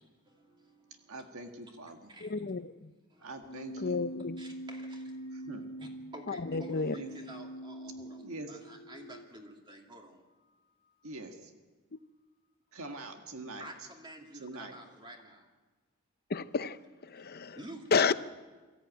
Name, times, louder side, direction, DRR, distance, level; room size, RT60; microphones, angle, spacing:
voice 1, 0.3-1.2 2.1-2.4 3.1-3.5 4.4-10.2 13.6-15.5 17.5-18.1, right 1 dB, 20° right, 1 dB, 2.5 m, -50 dB
voice 2, 1.1-2.1 3.2-4.0 5.5-5.7 6.9-7.1 8.2-8.5 11.0-11.5 12.7-13.7 14.4-14.8, right 2 dB, 70° right, 4 dB, 1.7 m, -44 dB
voice 3, 2.2-2.9 3.8-4.4 6.3-6.9 16.3-17.6 17.9-18.1, left 5 dB, 45° left, 14 dB, 0.6 m, -31 dB
Keyboard (musical), 3.4-9.4, right 1 dB, 85° left, 1.0 m, -44 dB
23.5 x 14.0 x 9.2 m, 1.3 s
head